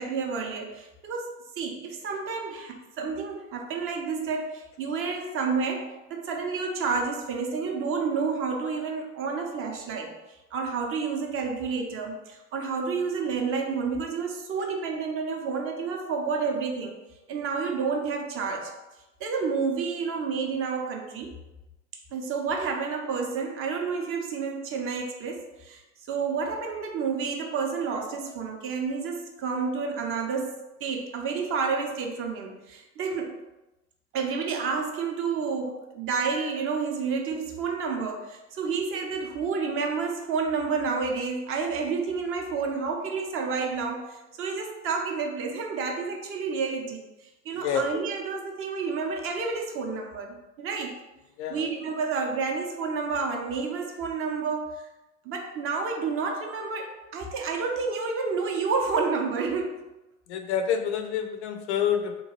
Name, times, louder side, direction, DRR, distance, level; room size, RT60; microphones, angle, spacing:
voice 1, 0.0-17.0 17.3-18.7 19.2-21.4 22.1-25.8 26.1-33.4 34.1-47.0 47.4-51.0 51.5-54.9 55.2-59.9, right 5 dB, 35° right, 3 dB, 0.5 m, -30 dB
voice 2, 47.6-47.9 51.4-51.8 60.3-62.2, left 8 dB, 70° left, 6 dB, 0.5 m, -28 dB
2.9 x 2.2 x 2.9 m, 1.0 s
hypercardioid pair, 75°, 36 cm